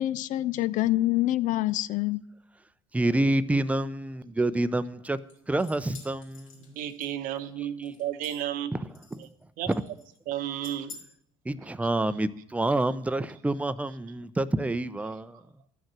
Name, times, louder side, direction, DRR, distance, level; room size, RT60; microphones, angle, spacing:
voice 1, 0.0-2.2, left 15 dB, 50° left, 17 dB, 0.5 m, -26 dB
voice 2, 2.9-5.2 5.5-6.5 9.2-9.3 11.5-15.4, right 2 dB, 10° right, 14 dB, 0.6 m, -27 dB
sound 1, 5.3-7.4 7.8-8.6 8.9-9.4 9.7-10.2 10.6-11.0, left 5 dB, 80° left, 2.8 m, -49 dB
voice 3, 6.5-8.7 9.2-9.3 9.6-9.9 10.3-11.1 12.1-12.2 15.3-15.4, right 11 dB, 55° right, 12 dB, 1.0 m, -33 dB
12.5 x 6.4 x 7.5 m, 0.71 s
figure-of-eight pair, 60°, 16 cm